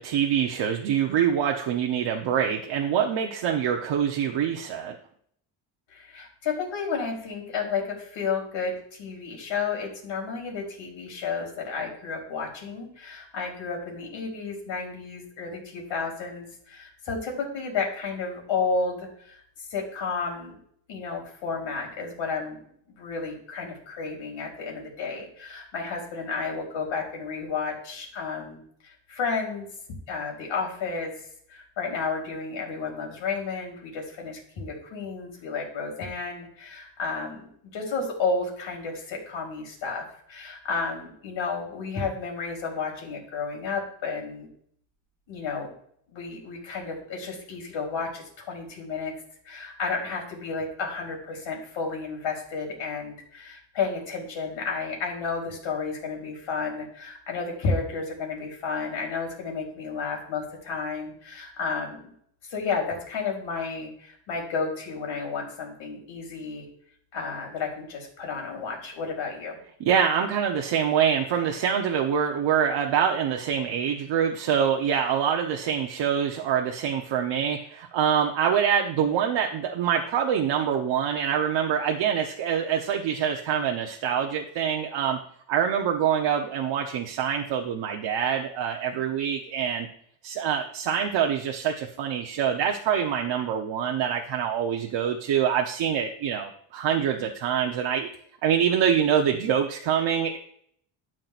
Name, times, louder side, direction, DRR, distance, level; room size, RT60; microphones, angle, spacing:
voice 1, 0.0-5.0 69.8-85.2 85.5-89.9 90.2-98.1 98.4-100.4, right 8 dB, 65° right, 2 dB, 1.0 m, -25 dB
voice 2, 5.9-20.6 20.9-22.6 22.9-29.7 30.1-31.1 31.5-44.5 45.3-45.7 46.1-49.1 49.5-62.1 62.5-66.7 67.1-69.6, left 4 dB, 70° left, 0 dB, 3.8 m, -32 dB
12.0 x 7.6 x 2.5 m, 0.65 s
cardioid pair, 95°, 47 cm